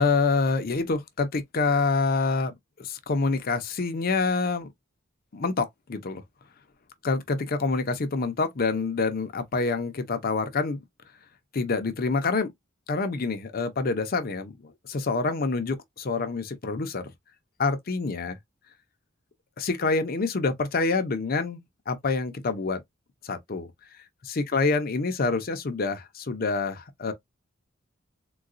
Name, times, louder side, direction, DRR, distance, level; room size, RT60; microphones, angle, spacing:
voice 1, 0.0-2.5 2.8-4.7 5.3-6.2 7.0-10.8 11.5-12.5 12.9-17.1 17.6-18.4 19.6-22.8 23.2-23.7 24.2-27.1, left 4 dB, 45° left, 0.6 m, -27 dB
3.8 x 2.2 x 2.4 m
head